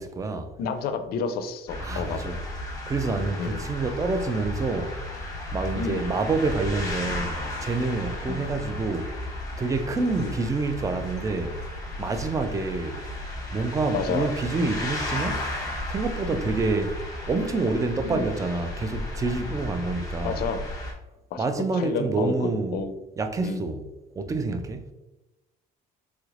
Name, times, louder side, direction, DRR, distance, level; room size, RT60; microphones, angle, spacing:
voice 1, 0.0-0.5 1.8-2.4 2.9-4.9 5.5-9.2 9.6-11.6 12.0-13.0 13.5-15.5 15.9-17.0 17.3-20.4 21.4-22.8 23.2-23.9 24.2-24.9, right 3 dB, 20° right, 0.3 m, -27 dB
voice 2, 0.6-2.4 3.4-3.8 5.7-6.1 8.3-8.5 10.2-10.3 13.9-14.3 16.3-16.4 18.0-18.3 20.2-20.7 21.3-21.4 21.7-22.9 23.4-23.7, left 5 dB, 65° left, 0.4 m, -30 dB
sound 1, 1.7-20.9, left 1 dB, 20° left, 1.0 m, -34 dB
3.2 x 3.0 x 2.4 m
cardioid pair, 110°, 17 cm